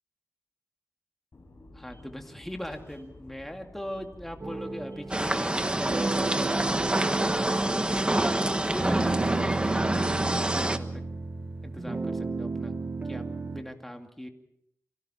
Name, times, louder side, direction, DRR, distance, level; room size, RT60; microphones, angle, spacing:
sound 1, 1.3-10.4, left 1 dB, 50° left, 7.5 m, -51 dB
voice 1, 1.7-8.1 8.7-10.1 10.5-11.0 11.6-12.7 13.1-13.2 13.5-14.3, equal, 5° left, 3 dB, 2.3 m, -40 dB
sound 2, 4.4-13.6, right 3 dB, 35° right, 1.8 m, -33 dB
sound 3, 5.1-10.8, right 1 dB, 20° right, 1.3 m, -27 dB
30.0 x 25.5 x 4.4 m, 0.72 s
wide cardioid pair, 105°, 5 cm